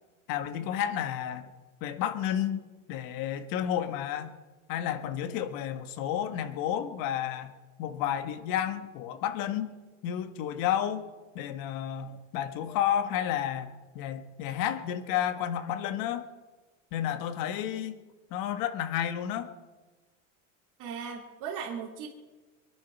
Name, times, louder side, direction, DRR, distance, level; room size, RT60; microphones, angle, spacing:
voice 1, 0.3-1.5 1.8-4.3 4.7-7.5 7.8-9.7 10.0-11.1 11.4-13.7 14.0-16.3 16.9-18.0 18.3-19.5, left 10 dB, 60° left, 9 dB, 1.7 m, -31 dB
voice 2, 20.8-22.1, right 7 dB, 50° right, -2 dB, 2.7 m, -37 dB
22.5 x 10.5 x 6.1 m, 1.3 s
supercardioid pair, 125°, 39 cm